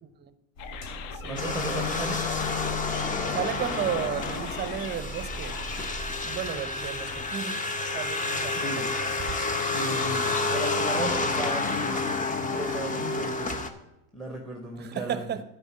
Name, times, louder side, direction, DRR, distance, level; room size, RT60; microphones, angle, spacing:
voice 1, 0.0-0.3 1.1-1.9 3.3-5.6 6.2-7.7 7.9-9.1 11.0-11.2 14.8-15.4, right 9 dB, 25° right, 0.7 m, -34 dB
sound 1, 0.6-7.3, right 1 dB, 75° left, 2.7 m, -41 dB
sound 2, 0.6-6.0, left 9 dB, 55° left, 0.8 m, -41 dB
voice 2, 1.3-2.2 8.5-8.9 9.7-13.7 14.1-15.3, right 1 dB, ahead, 1.1 m, -35 dB
sound 3, 1.4-13.7, left 3 dB, 20° left, 0.8 m, -29 dB
9.8 x 4.6 x 7.5 m
hypercardioid pair, 100°, 39 cm